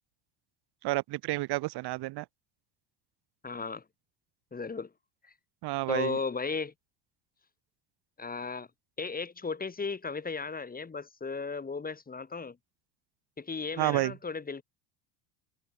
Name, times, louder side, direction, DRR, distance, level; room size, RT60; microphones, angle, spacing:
voice 1, 0.8-2.3 5.6-6.2 13.8-14.1, right 19 dB, 55° right, 1.8 m, -30 dB
voice 2, 3.4-3.8 4.5-4.9 5.9-6.7 8.2-8.7 9.0-12.6 13.4-14.6, left 4 dB, 20° left, 2.0 m, -35 dB
hypercardioid pair, 80°, 46 cm